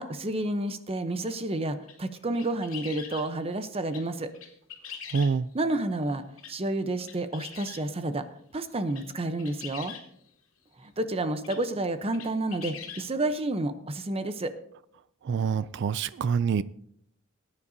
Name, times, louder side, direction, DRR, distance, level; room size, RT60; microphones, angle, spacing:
voice 1, 0.0-4.3 5.5-8.3 8.5-9.9 10.8-14.5, right 2 dB, 30° right, 10 dB, 0.7 m, -30 dB
sound 1, 1.3-1.4 1.8-3.3 3.9-4.0 4.3-5.6 6.4-6.5 7.0-7.8 8.7-9.1 9.4-10.0 11.1-11.2 11.4-11.6 12.1-13.1, left 7 dB, 70° left, 2.3 m, -42 dB
voice 2, 5.1-5.5 15.2-16.6, right 6 dB, 60° right, 17 dB, 0.3 m, -26 dB
19.0 x 9.8 x 2.7 m, 0.70 s
head